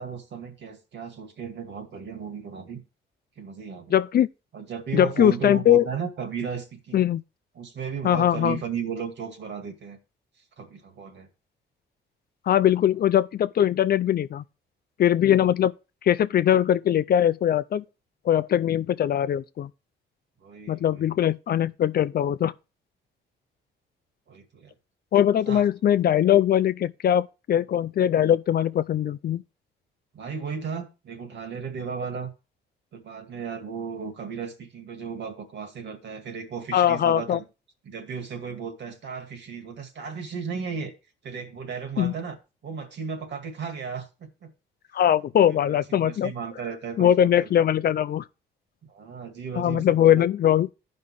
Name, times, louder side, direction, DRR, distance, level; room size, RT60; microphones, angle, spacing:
voice 1, 0.0-2.8 3.4-4.0 4.5-7.0 7.5-10.0 10.6-11.3 12.5-12.6 20.4-21.1 24.3-24.7 25.5-25.6 30.1-32.3 32.9-37.4 37.8-40.9 41.2-42.4 42.6-44.5 45.5-47.9 48.9-50.3, right 6 dB, 65° right, 2.2 m, -35 dB
voice 2, 3.9-4.3 4.9-5.9 6.9-7.2 8.0-8.6 12.5-14.4 15.0-15.7 16.0-17.8 18.3-19.7 20.7-22.5 25.1-29.4 36.7-37.4 42.0-42.1 44.9-46.3 47.0-48.2 49.5-50.7, left 10 dB, 50° left, 0.5 m, -21 dB
14.5 x 5.4 x 3.1 m
cardioid pair, 90°, 20 cm